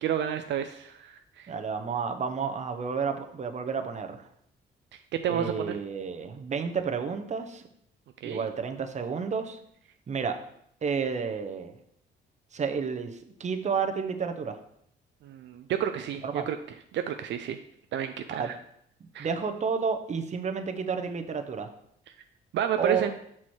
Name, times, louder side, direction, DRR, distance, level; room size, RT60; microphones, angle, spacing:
voice 1, 0.0-1.5 5.2-5.7 8.2-8.5 15.2-16.6 16.9-17.6 17.9-18.6 19.1-19.3 22.5-23.1, right 9 dB, 65° right, 7 dB, 0.4 m, -30 dB
voice 2, 1.5-4.3 5.3-7.6 8.2-9.6 10.1-10.4 10.8-11.7 12.5-14.6 16.2-16.5 18.3-18.5 19.2-21.7 22.8-23.1, right 5 dB, 35° right, 6 dB, 0.7 m, -31 dB
6.1 x 4.3 x 4.5 m, 0.72 s
cardioid pair, 90°, 20 cm